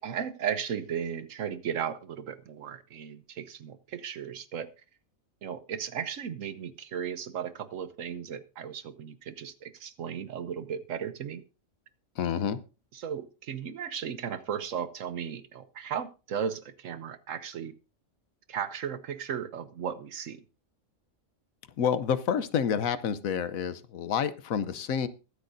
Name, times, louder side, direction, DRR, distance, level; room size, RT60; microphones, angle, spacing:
voice 1, 0.0-4.7 5.4-11.4 13.0-17.7 18.5-20.4, right 8 dB, 70° right, 13 dB, 1.2 m, -35 dB
voice 2, 12.2-12.6 21.8-25.1, left 7 dB, 80° left, 14 dB, 1.3 m, -28 dB
23.0 x 8.1 x 2.7 m, 0.31 s
omnidirectional pair, 1.4 m